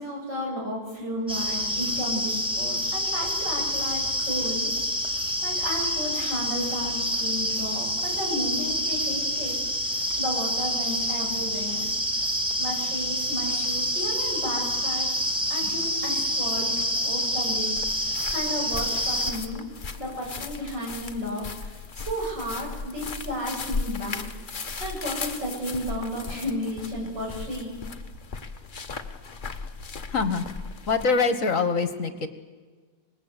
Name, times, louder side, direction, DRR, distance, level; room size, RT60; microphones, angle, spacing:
voice 1, 0.0-4.7 5.0-9.9 10.2-11.9 12.6-15.1 15.5-17.7 18.1-19.6 20.0-27.8, equal, 85° right, -2 dB, 8.4 m, -33 dB
sound 1, 1.3-19.3, equal, 5° right, 1.9 m, -27 dB
sound 2, 17.8-31.0, left 4 dB, 35° left, 1.1 m, -37 dB
voice 2, 30.1-30.4 30.9-32.3, left 4 dB, 50° left, 9 dB, 1.7 m, -24 dB
26.0 x 21.0 x 8.3 m, 1.5 s
omnidirectional pair, 1.9 m